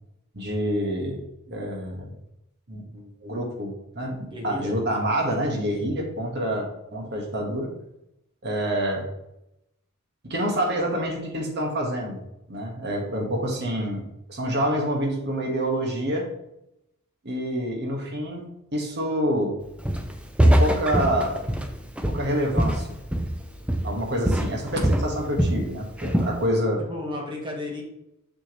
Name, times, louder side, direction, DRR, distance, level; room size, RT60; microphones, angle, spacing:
voice 1, 0.3-1.2 1.5-2.1 2.7-7.7 8.4-9.1 10.2-12.2 12.5-16.3 17.2-18.4 18.7-19.6 20.4-21.4 22.1-23.0 23.8-26.8, equal, 50° right, 0 dB, 1.5 m, -27 dB
voice 2, 4.3-4.7 26.8-27.8, left 1 dB, 20° right, -1 dB, 1.4 m, -33 dB
Walk footsteps, 19.9-20.1 20.4-23.4 23.7-24.0 24.3-25.6 26.0-26.4, right 1 dB, 5° right, 0.5 m, -22 dB
6.3 x 6.2 x 3.1 m, 0.85 s
head